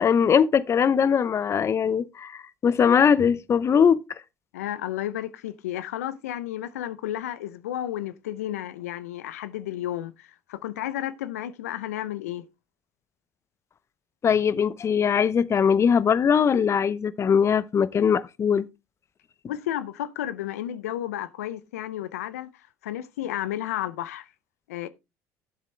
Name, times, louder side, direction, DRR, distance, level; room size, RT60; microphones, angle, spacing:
voice 1, 0.0-4.0 14.2-18.7, left 7 dB, 35° left, 0.7 m, -21 dB
voice 2, 4.5-12.5 19.5-22.5 22.8-24.3 24.7-24.9, left 12 dB, 85° left, 0.6 m, -32 dB
11.5 x 7.5 x 3.3 m
hypercardioid pair, 70°, 8 cm